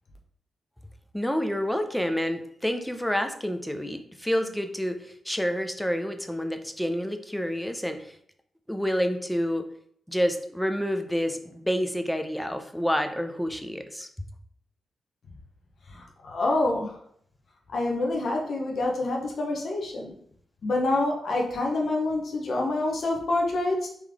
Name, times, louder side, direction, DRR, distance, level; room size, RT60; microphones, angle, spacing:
voice 1, 1.1-8.0 8.7-9.6 10.1-14.1, equal, 5° left, 7 dB, 0.6 m, -28 dB
voice 2, 15.9-17.0 17.7-20.1 20.6-23.9, left 2 dB, 65° left, 0 dB, 0.9 m, -27 dB
3.7 x 3.1 x 3.5 m, 0.65 s
supercardioid pair, 55°, 0 cm